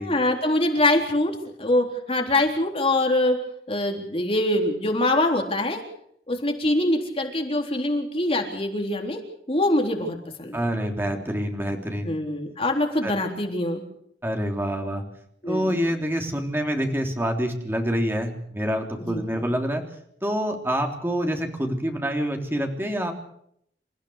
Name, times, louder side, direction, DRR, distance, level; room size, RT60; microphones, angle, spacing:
voice 1, 0.0-3.4 3.7-5.8 6.3-9.2 9.5-10.6 12.1-13.8 15.4-15.8 19.0-19.4, left 1 dB, 35° left, 2 dB, 3.7 m, -24 dB
voice 2, 10.5-12.1 13.0-13.1 14.2-15.0 15.4-19.8 20.2-23.1, equal, 15° right, 3 dB, 3.4 m, -26 dB
28.5 x 15.5 x 6.6 m, 0.70 s
head